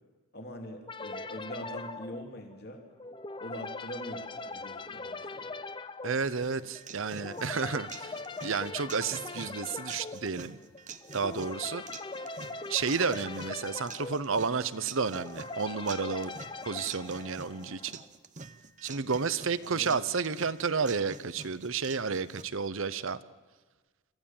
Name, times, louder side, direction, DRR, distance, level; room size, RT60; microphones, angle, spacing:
voice 1, 0.3-2.8 3.4-5.5 19.6-19.9, equal, 45° left, 2 dB, 2.8 m, -43 dB
sound 1, 0.9-18.1, left 3 dB, 20° left, 0.5 m, -41 dB
voice 2, 6.0-10.6 11.1-11.8 12.7-16.3 16.7-17.9 18.8-23.2, right 5 dB, 65° right, 15 dB, 0.8 m, -31 dB
sound 2, 6.4-22.4, right 5 dB, 35° right, 0.8 m, -48 dB
26.5 x 15.0 x 7.4 m, 1.3 s
head